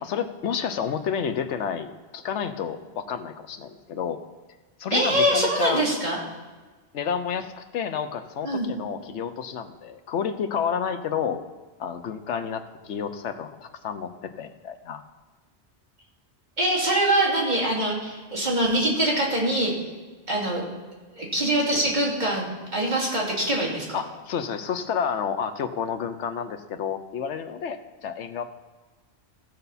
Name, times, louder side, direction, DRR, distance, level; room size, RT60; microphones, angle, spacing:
voice 1, 0.0-4.2 4.8-5.8 6.9-11.4 11.8-15.0 23.9-28.4, left 7 dB, 85° left, 9 dB, 1.1 m, -30 dB
voice 2, 4.9-6.2 8.4-8.7 16.6-19.7 20.3-20.7 21.1-22.5 22.7-23.9, right 1 dB, 40° right, -4 dB, 2.8 m, -23 dB
15.5 x 6.7 x 4.1 m, 1.3 s
omnidirectional pair, 1.2 m